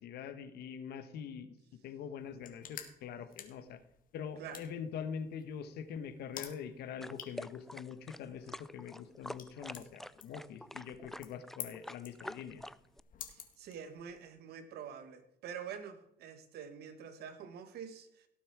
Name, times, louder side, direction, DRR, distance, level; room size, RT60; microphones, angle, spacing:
voice 1, 0.0-1.5 1.8-3.8 4.1-12.6, left 7 dB, 75° left, 11 dB, 1.3 m, -44 dB
sound 1, 2.2-14.3, left 8 dB, 55° left, 2.0 m, -52 dB
sound 2, 7.0-13.0, left 1 dB, ahead, 0.3 m, -47 dB
voice 2, 13.3-18.3, right 7 dB, 70° right, 10 dB, 1.6 m, -46 dB
17.5 x 7.3 x 4.7 m, 0.78 s
cardioid pair, 110°, 17 cm